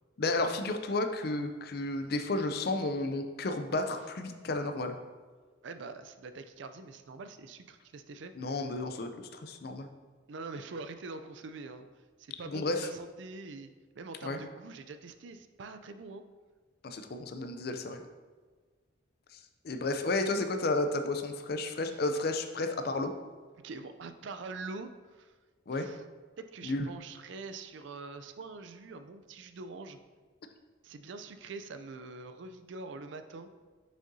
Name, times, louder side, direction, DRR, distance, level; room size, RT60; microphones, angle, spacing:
voice 1, 0.2-5.0 8.4-9.9 12.5-12.9 14.2-14.4 16.8-18.0 19.6-23.1 25.7-25.9 26.6-26.9, left 2 dB, 50° left, 8 dB, 0.4 m, -32 dB
voice 2, 5.6-8.3 10.3-11.9 12.2-13.7 14.0-16.3 21.9-22.0 23.5-25.3 25.7-26.0 26.4-30.0 30.8-33.5, right 3 dB, 65° right, 9 dB, 0.4 m, -44 dB
6.5 x 6.3 x 2.7 m, 1.5 s
head